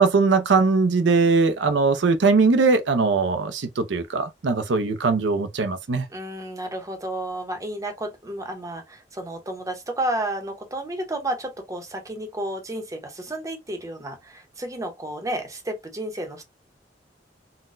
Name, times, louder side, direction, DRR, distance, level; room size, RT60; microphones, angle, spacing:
voice 1, 0.0-6.0, right 4 dB, 75° right, 0.5 m, -20 dB
voice 2, 6.1-16.4, right 1 dB, 20° right, 0.7 m, -31 dB
3.9 x 2.1 x 2.5 m
head